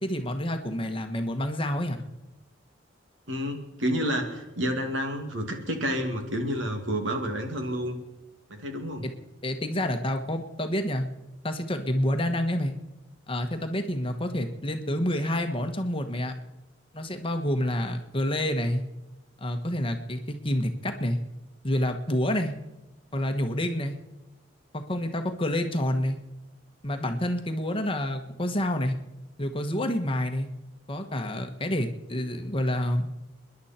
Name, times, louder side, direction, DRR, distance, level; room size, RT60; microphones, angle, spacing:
voice 1, 0.0-2.1 9.4-11.0 11.4-12.7 13.3-16.3 16.9-18.8 19.4-21.2 21.6-22.5 23.1-23.9 24.7-26.2 26.8-28.9 29.4-30.5 30.9-33.1, left 1 dB, 30° left, 6 dB, 1.3 m, -28 dB
voice 2, 3.3-8.0 8.5-9.1, equal, 90° right, 4 dB, 2.4 m, -29 dB
29.5 x 10.5 x 4.4 m, 0.99 s
head